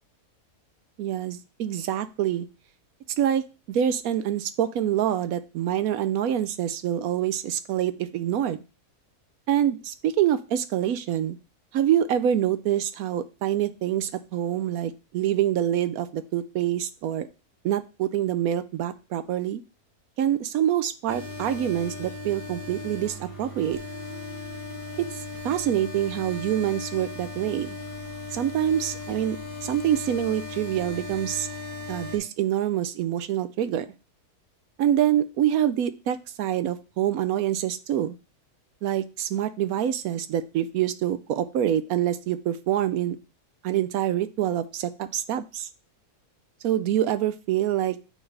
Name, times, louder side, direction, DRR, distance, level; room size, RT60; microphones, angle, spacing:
voice 1, 1.0-2.5 3.2-8.6 9.5-11.4 11.7-17.3 17.6-19.6 20.2-23.8 25.0-27.8 28.3-29.4 29.6-31.5 31.9-33.9 34.8-38.2 38.8-43.2 43.6-45.7 46.6-48.0, right 11 dB, 70° right, 12 dB, 1.0 m, -26 dB
sound 1, 21.1-32.2, left 3 dB, 15° right, 1.4 m, -37 dB
8.6 x 3.8 x 3.3 m, 0.31 s
omnidirectional pair, 1.7 m